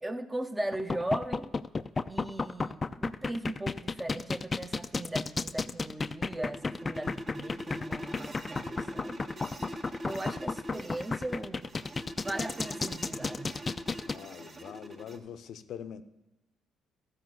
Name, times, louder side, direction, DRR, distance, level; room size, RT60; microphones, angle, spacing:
voice 1, 0.0-1.5 2.1-9.2 10.0-11.7 12.2-13.5, right 1 dB, 15° right, 0.8 m, -38 dB
sound 1, 0.7-14.1, left 4 dB, 30° left, 0.4 m, -32 dB
sound 2, 5.8-15.2, equal, 40° right, 1.6 m, -43 dB
voice 2, 14.1-16.0, left 8 dB, 70° left, 0.6 m, -43 dB
12.5 x 4.9 x 7.8 m
supercardioid pair, 75°, 0 cm